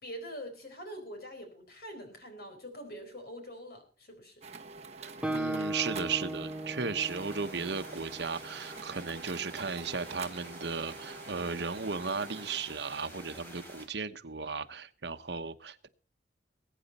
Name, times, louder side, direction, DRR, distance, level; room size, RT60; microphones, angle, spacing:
voice 1, 0.0-4.3, equal, 55° left, 4.5 m, -44 dB
sound 1, 4.4-12.6, right 4 dB, 35° right, 1.6 m, -46 dB
voice 2, 5.0-15.9, right 5 dB, 70° right, 1.1 m, -35 dB
Guitar, 5.2-8.9, right 1 dB, 5° right, 0.7 m, -37 dB
sound 2, 7.0-13.9, right 1 dB, 10° left, 4.2 m, -49 dB
21.5 x 9.3 x 4.2 m
head